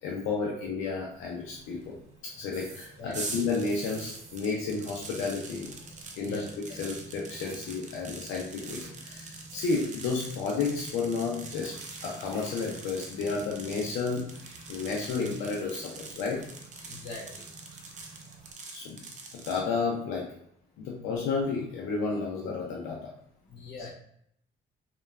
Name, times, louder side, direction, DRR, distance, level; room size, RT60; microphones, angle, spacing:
voice 1, 0.0-2.0 2.2-5.7 6.1-6.4 6.7-11.7 12.0-14.3 14.7-16.4 18.7-19.0 19.3-20.3 20.8-23.1 23.8-23.9, left 4 dB, 90° left, -2 dB, 0.5 m, -32 dB
sound 1, 1.1-18.5, right 2 dB, 75° right, 0.7 m, -50 dB
sound 2, 3.1-19.6, right 3 dB, 40° right, 0.5 m, -44 dB
voice 2, 6.2-6.8 16.8-17.5 23.5-23.9, left 3 dB, 55° left, -3 dB, 1.1 m, -43 dB
3.0 x 2.2 x 2.2 m, 0.70 s
cardioid pair, 90°, 20 cm